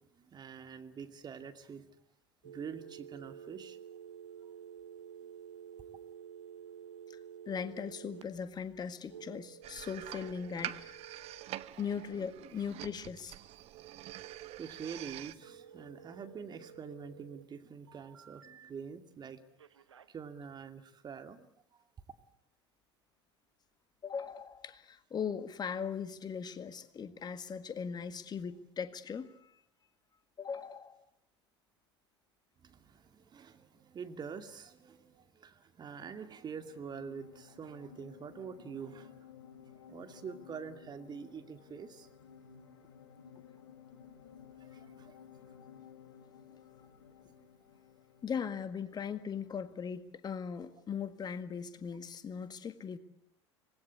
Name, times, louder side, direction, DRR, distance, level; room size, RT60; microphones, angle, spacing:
voice 1, 0.2-1.9 2.4-3.8 14.6-19.4 20.1-21.5 32.6-39.1 39.9-42.1 44.6-45.2 47.4-47.5, right 6 dB, 30° right, 2.4 m, -46 dB
sound 1, 2.4-8.2 9.1-11.4 15.4-17.4 17.9-18.7 19.6-20.1, right 8 dB, 80° right, 1.1 m, -51 dB
voice 2, 7.5-11.0 11.8-13.3 24.0-29.5 30.4-31.0 48.2-53.0, left 6 dB, 30° left, 1.7 m, -39 dB
sound 2, 9.6-15.3, right 14 dB, 45° right, 1.2 m, -45 dB
sound 3, 36.6-49.9, left 8 dB, 65° left, 2.8 m, -56 dB
26.0 x 20.0 x 8.4 m
figure-of-eight pair, 70°, 15 cm